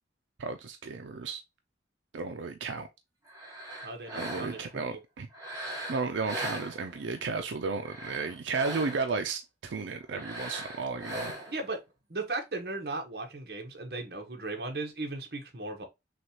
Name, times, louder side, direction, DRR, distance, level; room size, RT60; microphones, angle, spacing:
voice 1, 0.4-1.4 2.1-2.9 4.1-5.3 5.9-11.3, right 4 dB, 90° right, 0.5 m, -33 dB
sound 1, 3.3-4.8 5.3-7.2 7.7-9.2 10.1-11.7, right 1 dB, 20° right, 1.4 m, -40 dB
voice 2, 3.8-5.0 11.5-11.8 12.1-15.9, right 2 dB, 60° right, 1.1 m, -37 dB
6.2 x 2.4 x 2.8 m
head